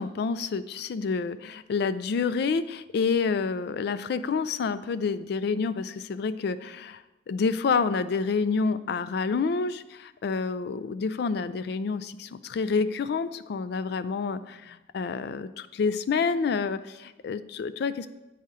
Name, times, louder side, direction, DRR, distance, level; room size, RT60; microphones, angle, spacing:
voice 1, 0.0-18.1, left 5 dB, 60° left, 13 dB, 0.3 m, -28 dB
9.7 x 4.3 x 3.7 m, 1.1 s
head